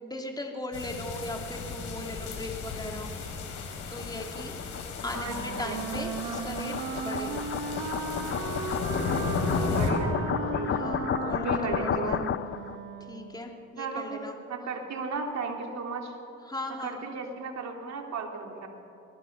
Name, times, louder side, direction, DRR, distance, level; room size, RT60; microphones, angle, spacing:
voice 1, 0.0-3.1 3.9-4.6 5.0-6.7 7.0-7.5 10.7-11.5 11.8-12.2 13.0-14.4 16.5-17.0, left 1 dB, 15° left, 2 dB, 3.0 m, -38 dB
sound 1, 0.7-9.9, left 5 dB, 80° left, 4.3 m, -35 dB
sound 2, 2.8-12.7, left 10 dB, 40° left, 0.5 m, -33 dB
Wind instrument woodwind instrument, 5.2-13.5, right 6 dB, 80° right, 1.8 m, -36 dB
voice 2, 9.7-10.8 11.4-12.2 13.8-16.1 16.8-18.7, right 4 dB, 65° right, 2 dB, 3.0 m, -35 dB
25.5 x 18.5 x 6.7 m, 2.8 s
cardioid pair, 90°, 30 cm